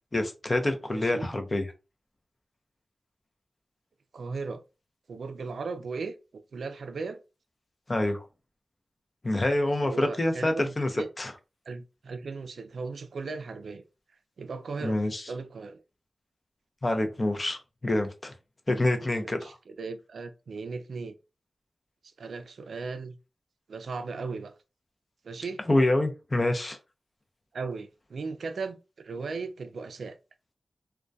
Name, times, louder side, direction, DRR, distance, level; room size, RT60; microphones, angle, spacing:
voice 1, 0.1-1.7 7.9-8.2 9.2-10.9 11.2-11.3 14.8-15.2 16.8-18.3 18.7-19.5 25.7-26.8, left 1 dB, 35° left, 0.5 m, -26 dB
voice 2, 0.9-1.3 4.1-4.6 5.1-6.2 6.5-7.2 9.8-11.1 11.7-13.8 14.4-15.8 19.1-21.2 22.2-23.2 23.7-24.5 25.2-25.6 27.5-28.8 29.0-30.2, right 4 dB, 85° right, 0.3 m, -37 dB
2.2 x 2.2 x 2.6 m
cardioid pair, 55°, 0 cm